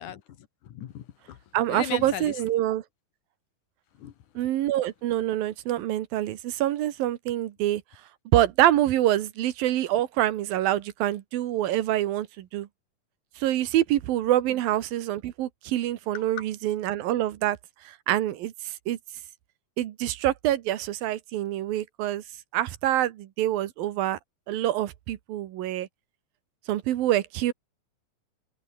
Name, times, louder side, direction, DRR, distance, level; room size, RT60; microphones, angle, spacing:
voice 1, 0.0-2.4 3.9-4.2 14.5-14.6 16.1-16.2, left 10 dB, 65° left, 2.8 m, -38 dB
voice 2, 1.5-2.8 4.3-7.8 8.3-12.7 13.4-17.6 17.8-19.0 19.8-22.2 22.5-24.2 24.5-25.9 26.7-27.5, right 13 dB, 85° right, 3.1 m, -26 dB
omnidirectional pair, 4.0 m